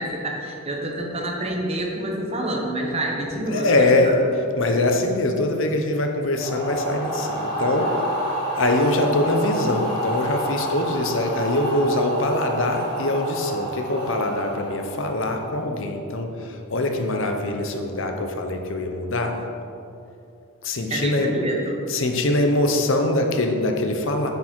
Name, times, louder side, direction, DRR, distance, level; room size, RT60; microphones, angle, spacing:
voice 1, 0.0-4.1 20.9-21.8, right 1 dB, 30° right, 0 dB, 1.1 m, -27 dB
voice 2, 3.2-8.1 8.6-19.3 20.6-21.4 21.9-24.3, left 2 dB, 60° left, 4 dB, 0.9 m, -23 dB
sound 1, 6.4-15.5, right 1 dB, 40° left, 2.4 m, -29 dB
9.6 x 7.1 x 4.4 m, 2.6 s
head